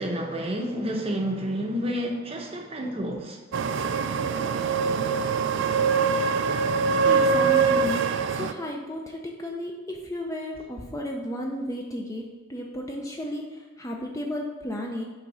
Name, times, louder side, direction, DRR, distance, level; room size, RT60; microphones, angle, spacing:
voice 1, 0.0-3.4, equal, 30° right, 2 dB, 0.7 m, -29 dB
sound 1, 3.5-8.5, right 5 dB, 60° right, 0.4 m, -23 dB
voice 2, 7.0-8.0 8.3-15.0, left 1 dB, 15° left, 1 dB, 0.4 m, -33 dB
5.6 x 3.6 x 5.5 m, 1.4 s
head